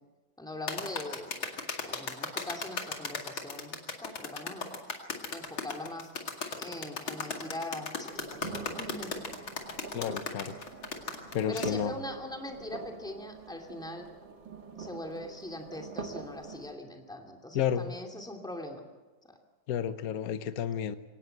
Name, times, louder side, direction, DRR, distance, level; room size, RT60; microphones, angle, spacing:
voice 1, 0.4-1.6 1.8-4.7 5.3-6.1 6.6-8.5 8.7-9.3 11.5-14.1 14.8-18.8 19.2-19.4, left 1 dB, ahead, 2 dB, 2.5 m, -41 dB
sound 1, 0.7-11.7, left 5 dB, 85° left, 3.0 m, -36 dB
sound 2, 8.1-16.7, right 4 dB, 65° right, 2.6 m, -44 dB
voice 2, 9.9-10.5 11.3-11.9 17.5-17.9 19.7-21.0, left 9 dB, 55° left, 11 dB, 1.3 m, -31 dB
23.5 x 18.0 x 7.9 m, 1.3 s
omnidirectional pair, 2.1 m